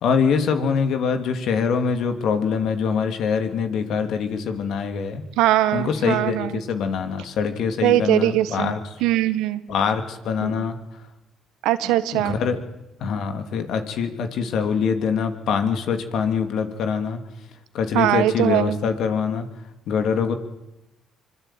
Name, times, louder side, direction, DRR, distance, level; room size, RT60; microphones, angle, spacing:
voice 1, 0.0-5.2 5.7-8.8 9.7-10.8 12.1-12.6 13.0-17.2 17.7-19.5 19.9-20.3, left 6 dB, 70° left, 7 dB, 3.0 m, -24 dB
voice 2, 5.4-6.6 7.8-8.7 9.0-9.6 10.4-10.6 11.6-12.4 17.9-18.8, right 14 dB, 85° right, 12 dB, 1.6 m, -21 dB
25.0 x 22.5 x 9.2 m, 0.95 s
supercardioid pair, 70°, 0 cm